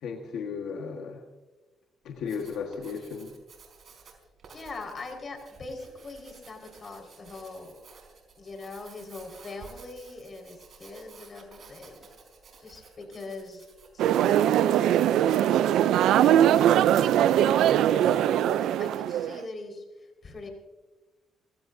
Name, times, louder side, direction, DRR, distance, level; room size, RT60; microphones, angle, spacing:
voice 1, 0.0-1.2 2.0-3.3, left 6 dB, 80° left, 2 dB, 1.6 m, -35 dB
Writing, 2.1-14.5, right 5 dB, 55° right, 4.2 m, -53 dB
voice 2, 4.5-7.7 8.4-12.1 12.6-13.7 13.9-15.6 16.1-20.5, left 3 dB, 40° left, 2 dB, 4.9 m, -42 dB
sound 1, 14.0-19.4, right 11 dB, 80° right, 0.5 m, -21 dB
29.5 x 15.5 x 2.7 m, 1.1 s
cardioid pair, 90°, 0 cm